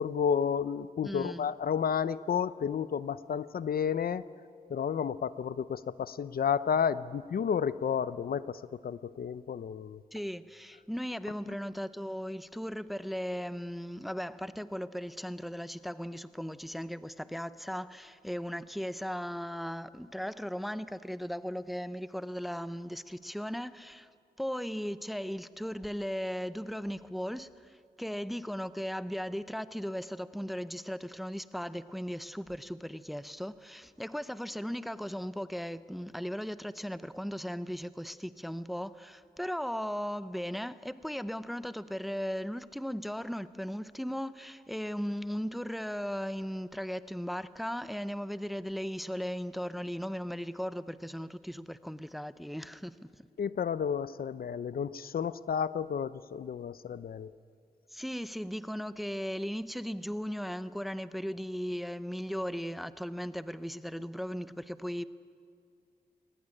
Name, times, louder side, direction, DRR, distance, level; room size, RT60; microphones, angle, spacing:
voice 1, 0.0-4.2 4.7-10.0 53.4-57.3, left 7 dB, 70° left, 0.6 m, -31 dB
voice 2, 1.0-1.5 10.1-24.1 24.4-53.3 57.9-65.0, equal, ahead, 0.7 m, -37 dB
22.0 x 19.0 x 9.9 m
wide cardioid pair, 85°, 16 cm